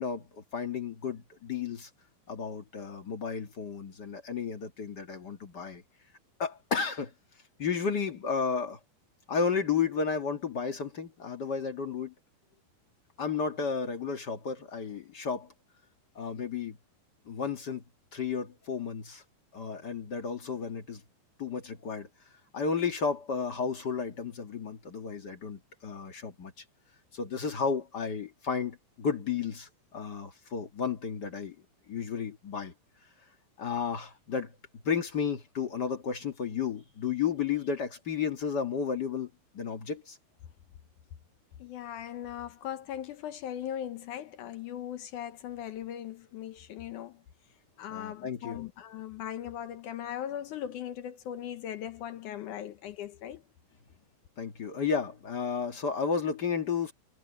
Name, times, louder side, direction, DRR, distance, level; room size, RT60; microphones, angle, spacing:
voice 1, 0.0-1.9 2.3-5.8 6.4-7.1 7.6-8.8 9.3-12.1 13.2-15.5 16.1-16.8 17.2-17.8 18.1-19.2 19.5-21.0 21.4-22.1 22.5-26.5 27.1-31.5 31.9-32.7 33.6-34.5 34.8-39.3 39.5-40.2 47.9-48.7 54.4-56.9, left 6 dB, 50° left, 1.2 m, -32 dB
voice 2, 41.6-47.2 47.8-53.4, left 10 dB, 70° left, 2.0 m, -39 dB
omnidirectional pair, 4.3 m